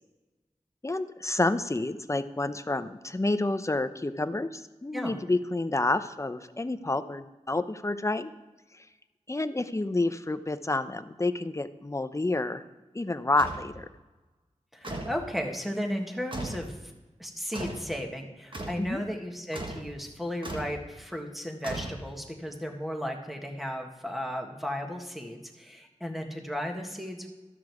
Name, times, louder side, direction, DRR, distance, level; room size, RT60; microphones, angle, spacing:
voice 1, 0.8-8.3 8.7-8.9 9.3-12.6 12.9-13.9 18.8-19.0, left 2 dB, 25° left, 11 dB, 0.6 m, -29 dB
sound 1, 13.4-13.7 14.8-15.2 16.3-16.7 17.5-17.9 18.5-18.9 19.5-19.9 20.4-20.8 21.6-22.3, right 1 dB, 40° right, 1.5 m, -37 dB
voice 2, 14.7-16.8 17.2-27.3, equal, ahead, 3 dB, 1.6 m, -35 dB
13.0 x 6.3 x 4.7 m, 1.2 s
wide cardioid pair, 45°, 13 cm